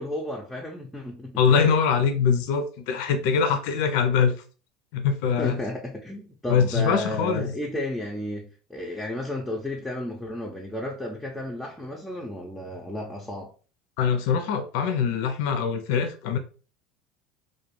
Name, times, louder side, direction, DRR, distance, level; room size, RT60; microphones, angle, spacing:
voice 1, 0.0-1.6 5.4-13.5, left 1 dB, 5° left, 0.5 m, -33 dB
voice 2, 1.4-4.4 4.9-5.6 6.5-7.6 14.0-16.4, left 6 dB, 70° left, 0.4 m, -23 dB
2.3 x 2.1 x 3.0 m
supercardioid pair, 95°, 0 cm